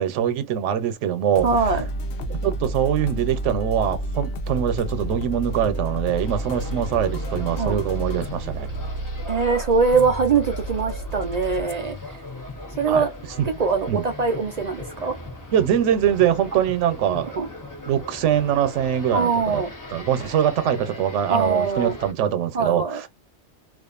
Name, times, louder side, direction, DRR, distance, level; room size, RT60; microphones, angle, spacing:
voice 1, 0.0-1.5 2.3-8.7 12.9-13.1 13.4-13.5 13.9-14.0 15.5-17.4 17.9-19.6 19.9-23.1, right 9 dB, 90° right, 0.9 m, -23 dB
sound 1, 1.3-14.7, right 1 dB, 70° left, 0.8 m, -31 dB
voice 2, 1.4-1.9 7.6-7.8 9.3-12.2 12.8-13.1 13.4-15.2 17.4-17.5 19.1-19.7 21.3-22.0 22.5-23.0, right 5 dB, 60° right, 0.4 m, -22 dB
sound 2, 6.1-22.1, left 2 dB, 30° left, 0.4 m, -39 dB
2.4 x 2.4 x 2.3 m
omnidirectional pair, 1.2 m